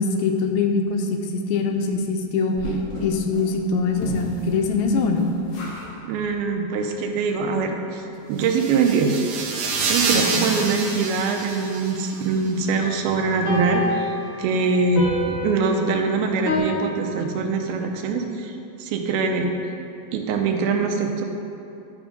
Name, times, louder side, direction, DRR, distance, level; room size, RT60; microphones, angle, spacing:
voice 1, 0.0-2.6 3.0-5.3 10.1-10.5, left 4 dB, 85° left, 3 dB, 2.5 m, -23 dB
sound 1, 2.5-5.9 6.1-6.3 6.7-6.8 7.1-7.2, left 1 dB, 55° left, 1.9 m, -36 dB
voice 2, 6.1-8.0 8.3-9.2 9.9-19.5 20.1-21.3, right 4 dB, 85° right, 3 dB, 2.6 m, -23 dB
sound 2, 8.4-12.3, right 4 dB, 70° right, 2.1 m, -27 dB
sound 3, 9.2-9.3 13.4-16.6, left 2 dB, 35° left, 1.0 m, -28 dB
11.0 x 3.8 x 5.0 m, 2.7 s
omnidirectional pair, 4.3 m